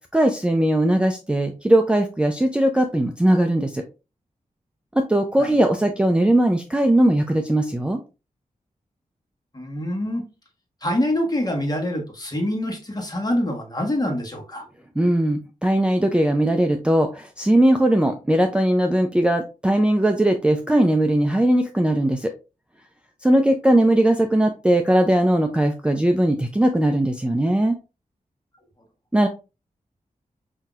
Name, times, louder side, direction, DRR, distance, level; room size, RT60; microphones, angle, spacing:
voice 1, 0.1-3.8 4.9-8.0 15.0-22.3 23.2-27.8 29.1-29.3, right 1 dB, 5° right, 4 dB, 0.4 m, -19 dB
voice 2, 9.5-10.2 10.8-14.7, left 1 dB, 25° left, 2 dB, 1.3 m, -25 dB
5.7 x 2.7 x 2.4 m, 0.29 s
wide cardioid pair, 100°, 14 cm